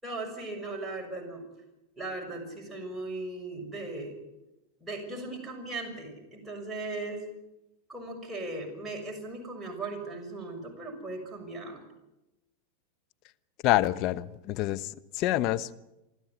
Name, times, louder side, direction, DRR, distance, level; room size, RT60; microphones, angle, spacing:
voice 1, 0.0-1.4 2.0-4.2 4.8-7.2 7.9-11.8, right 2 dB, 15° right, 0 dB, 6.4 m, -38 dB
voice 2, 13.6-15.7, left 15 dB, 50° left, 12 dB, 1.0 m, -27 dB
28.5 x 13.0 x 9.5 m, 0.96 s
hypercardioid pair, 100°, 0 cm